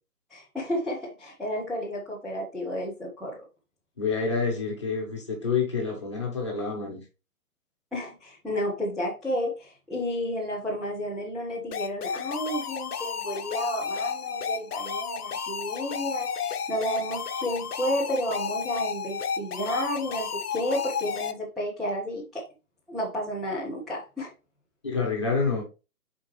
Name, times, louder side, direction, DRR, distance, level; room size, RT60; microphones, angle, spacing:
voice 1, 0.3-3.4 7.9-22.5 22.9-24.3, equal, ahead, -8 dB, 0.5 m, -31 dB
voice 2, 4.0-7.0 24.8-25.6, left 5 dB, 20° left, -1 dB, 1.0 m, -28 dB
sound 1, 11.7-21.3, left 6 dB, 75° left, 0.9 m, -32 dB
7.2 x 4.4 x 3.1 m, 0.30 s
hypercardioid pair, 175°, 46 cm